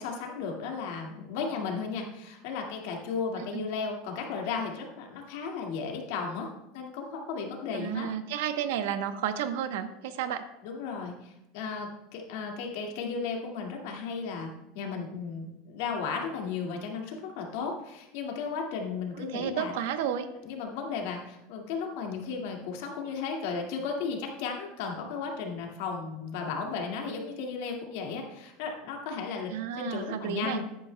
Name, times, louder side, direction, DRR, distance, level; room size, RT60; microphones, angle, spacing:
voice 1, 0.0-8.1 10.6-14.5 14.7-19.7 20.4-30.7, left 5 dB, 70° left, 1 dB, 1.9 m, -35 dB
voice 2, 3.4-3.7 7.7-10.4 19.2-20.3 29.5-30.6, right 9 dB, 80° right, 9 dB, 0.9 m, -32 dB
14.0 x 9.7 x 2.2 m, 0.89 s
supercardioid pair, 165°, 0 cm